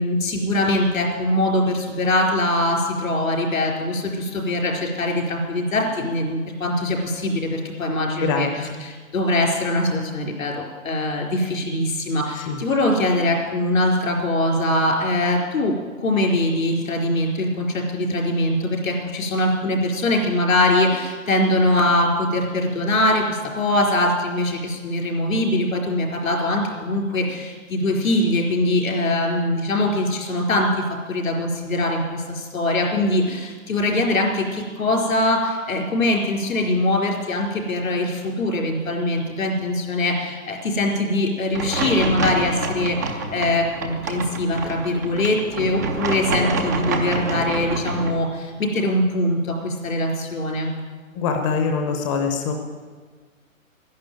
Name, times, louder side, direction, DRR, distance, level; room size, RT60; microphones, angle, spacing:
voice 1, 0.0-8.5 8.8-50.7, left 1 dB, 75° left, 1 dB, 4.5 m, -22 dB
voice 2, 8.2-8.8 12.4-12.6 51.1-52.5, left 5 dB, 25° left, 4 dB, 0.9 m, -24 dB
sound 1, 41.5-48.1, right 3 dB, 15° right, 0.5 m, -27 dB
11.0 x 11.0 x 9.2 m, 1.5 s
hypercardioid pair, 155°, 41 cm